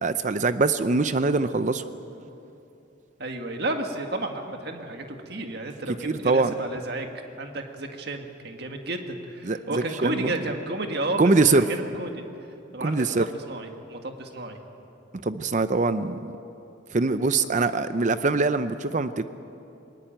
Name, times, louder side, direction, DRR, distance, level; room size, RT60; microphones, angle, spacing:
voice 1, 0.0-1.8 6.0-6.5 9.5-9.6 10.0-10.3 11.2-11.6 12.8-13.3 15.2-16.3 16.9-19.2, right 3 dB, 40° right, 11 dB, 0.6 m, -23 dB
voice 2, 3.2-7.1 7.4-12.2 12.7-14.6, right 2 dB, 55° right, 4 dB, 1.8 m, -32 dB
22.0 x 19.5 x 8.9 m, 2.8 s
head